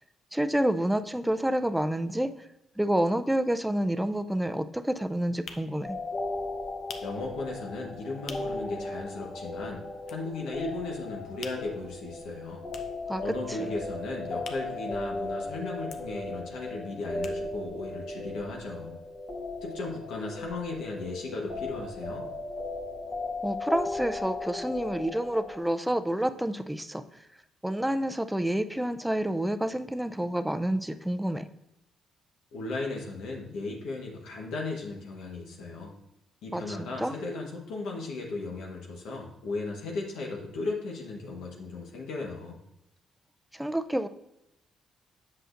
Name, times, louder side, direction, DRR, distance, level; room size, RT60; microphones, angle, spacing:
voice 1, 0.3-2.5 2.8-6.0 13.1-13.7 23.4-27.0 27.6-31.5 36.5-37.1 43.5-44.1, right 1 dB, 5° right, 10 dB, 0.4 m, -29 dB
sound 1, 3.6-3.7 4.0-8.7 9.0-9.1 9.4-10.6 10.9-15.4 15.7-17.8 18.1-18.2 18.4-18.5, left 5 dB, 65° left, 0.7 m, -47 dB
sound 2, 5.8-25.6, left 2 dB, 40° left, 1.3 m, -37 dB
voice 2, 7.0-9.8 10.1-12.7 13.2-19.0 19.6-22.3 32.5-35.9 36.4-42.6, left 3 dB, 80° left, -1 dB, 1.2 m, -36 dB
7.7 x 6.4 x 2.6 m, 0.88 s
cardioid pair, 90°, 0 cm